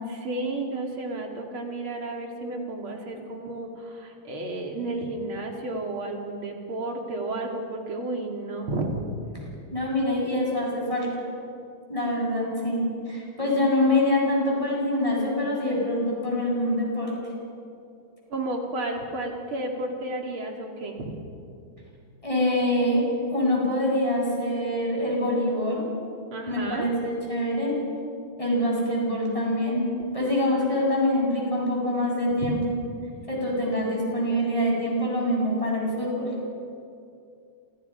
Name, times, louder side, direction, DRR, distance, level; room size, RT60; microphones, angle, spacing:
voice 1, 0.1-9.0 18.3-21.2 26.3-26.9 32.4-32.6, right 2 dB, 75° right, 1 dB, 3.3 m, -32 dB
voice 2, 9.7-11.2 11.9-17.1 22.2-25.8 26.5-27.8 28.4-32.6 33.3-36.3, left 1 dB, 15° left, -3 dB, 7.5 m, -25 dB
29.0 x 28.0 x 5.6 m, 2.5 s
omnidirectional pair, 2.3 m